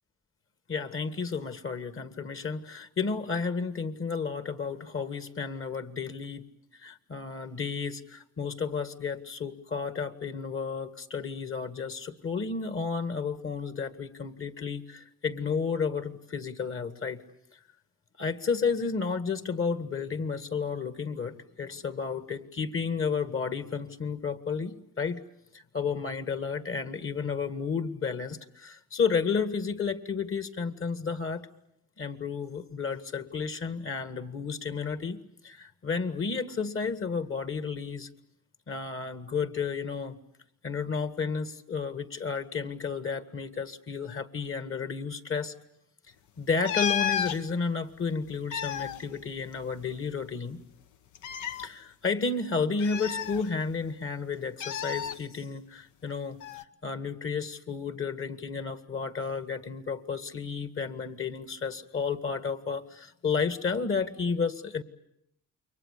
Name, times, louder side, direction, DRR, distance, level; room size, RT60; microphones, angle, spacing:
voice 1, 0.7-6.4 6.8-17.2 18.2-25.2 25.7-31.5 32.0-35.2 35.4-38.1 38.7-40.2 40.6-45.5 46.4-50.6 51.6-56.4 56.8-64.8, left 5 dB, 45° left, 11 dB, 2.0 m, -32 dB
sound 1, 46.6-47.4 48.3-50.0 50.2-50.3 51.2-51.7 52.8-53.9 54.6-55.2 56.4-56.6, left 9 dB, 80° left, 1.1 m, -32 dB
29.0 x 23.5 x 8.4 m, 0.78 s
cardioid pair, 90°, 30 cm